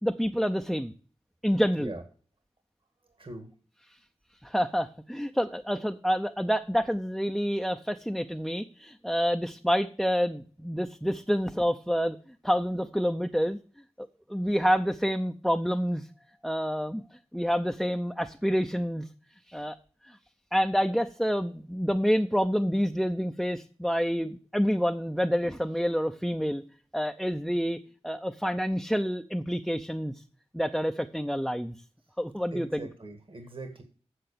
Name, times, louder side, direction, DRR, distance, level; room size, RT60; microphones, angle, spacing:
voice 1, 0.0-0.9 1.4-1.9 4.4-12.2 12.4-13.6 14.0-16.1 16.4-17.0 17.3-19.1 19.5-19.8 20.0-20.2 20.5-26.6 26.9-27.8 28.0-30.2 30.5-31.8 32.2-32.9, equal, ahead, 6 dB, 0.6 m, -28 dB
voice 2, 3.2-3.5 32.5-33.8, right 2 dB, 50° right, 6 dB, 1.8 m, -41 dB
7.9 x 7.4 x 6.9 m, 0.43 s
wide cardioid pair, 55°, 11 cm